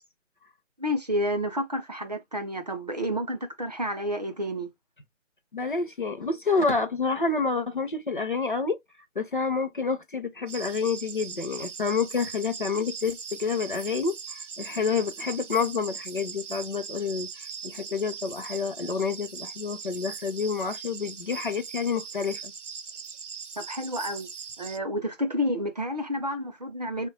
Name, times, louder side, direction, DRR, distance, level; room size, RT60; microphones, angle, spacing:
voice 1, 0.8-4.7 23.6-24.3 24.6-27.1, equal, 35° right, 0.5 m, -30 dB
voice 2, 5.5-8.8 9.2-22.5, left 4 dB, 45° left, 0.4 m, -28 dB
sound 1, 10.5-24.8, right 6 dB, 70° right, 0.7 m, -40 dB
3.2 x 2.1 x 3.9 m
figure-of-eight pair, 155°, 38 cm